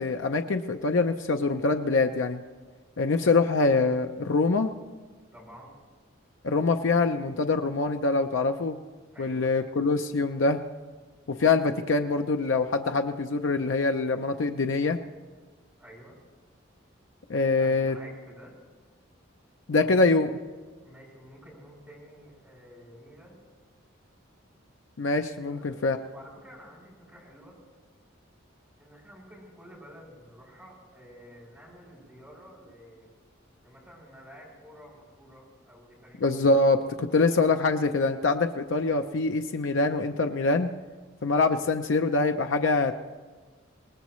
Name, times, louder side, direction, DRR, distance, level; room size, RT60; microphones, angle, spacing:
voice 1, 0.0-2.4 3.0-4.7 6.4-8.8 9.2-10.6 11.4-15.0 17.3-18.0 19.7-20.3 25.0-26.0 36.2-40.7 41.2-43.0, left 3 dB, 70° left, 5 dB, 0.6 m, -24 dB
voice 2, 5.3-5.7 9.1-9.5 15.8-16.2 17.5-18.5 19.7-20.1 20.8-23.4 25.4-25.8 26.1-27.6 28.8-33.1 33.6-36.6, equal, 10° right, -6 dB, 6.4 m, -50 dB
23.5 x 19.0 x 3.1 m, 1.4 s
head